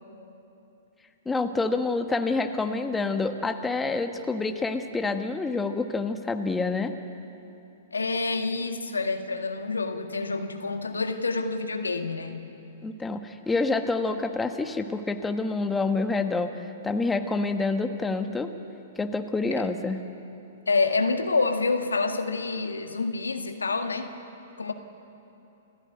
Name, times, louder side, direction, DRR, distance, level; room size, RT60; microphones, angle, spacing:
voice 1, 1.2-7.0 12.8-16.5 16.8-18.5 19.0-20.0, left 3 dB, 10° left, 6 dB, 1.4 m, -27 dB
voice 2, 7.9-12.4 19.5-19.7 20.7-24.1 24.6-24.7, left 3 dB, 85° left, 6 dB, 1.8 m, -27 dB
29.5 x 15.5 x 9.2 m, 2.9 s
figure-of-eight pair, 115°, 0 cm